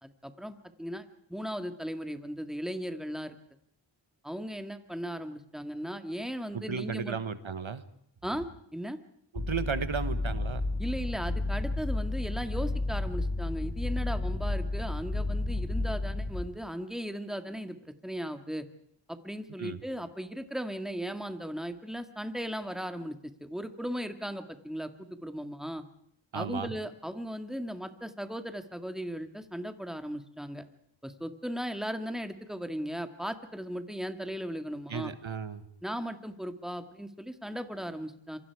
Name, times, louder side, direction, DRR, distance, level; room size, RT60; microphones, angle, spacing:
voice 1, 0.0-3.3 4.2-7.2 8.2-9.0 10.8-17.8 18.0-18.6 19.1-25.9 26.3-30.6 31.0-35.1 35.8-38.4, equal, ahead, 8 dB, 2.0 m, -37 dB
voice 2, 6.5-7.8 9.3-10.6 19.6-19.8 26.3-26.8 34.9-35.6, right 6 dB, 85° right, 12 dB, 1.3 m, -34 dB
sound 1, 9.4-16.4, left 2 dB, 70° left, 4.0 m, -31 dB
26.5 x 24.5 x 4.8 m, 0.72 s
wide cardioid pair, 45°, 46 cm